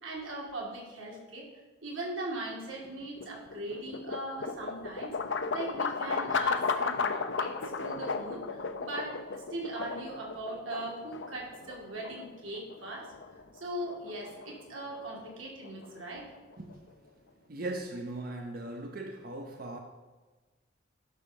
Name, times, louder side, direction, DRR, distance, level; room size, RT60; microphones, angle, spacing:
voice 1, 0.0-1.5 1.8-13.1 13.5-16.2, right 2 dB, 90° right, -2 dB, 2.6 m, -40 dB
sound 1, 2.8-16.9, left 4 dB, 70° left, 0.7 m, -35 dB
voice 2, 17.5-19.8, right 2 dB, 45° right, 3 dB, 0.9 m, -38 dB
11.0 x 5.4 x 6.4 m, 1.3 s
head